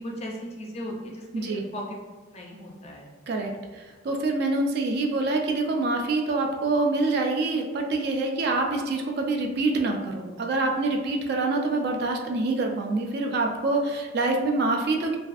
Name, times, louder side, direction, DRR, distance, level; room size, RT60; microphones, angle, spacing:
voice 1, 0.0-1.9 2.3-3.1, equal, 35° left, -1 dB, 0.4 m, -37 dB
voice 2, 1.3-1.6 3.3-15.2, right 2 dB, 55° right, 3 dB, 0.3 m, -26 dB
2.4 x 2.3 x 2.4 m, 1.2 s
head